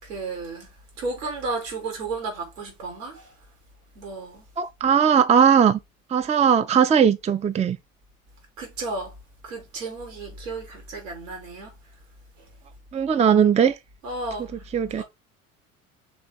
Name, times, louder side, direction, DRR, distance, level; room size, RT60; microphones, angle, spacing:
voice 1, 0.0-3.3 3.9-4.4 8.6-9.2 9.4-11.7 14.0-14.6 15.0-15.1, right 3 dB, 75° right, 4.1 m, -33 dB
voice 2, 4.6-5.8 6.1-7.8 12.9-13.7 14.7-15.0, right 7 dB, 15° right, 0.6 m, -19 dB
6.0 x 4.6 x 3.9 m
figure-of-eight pair, 65°, 39 cm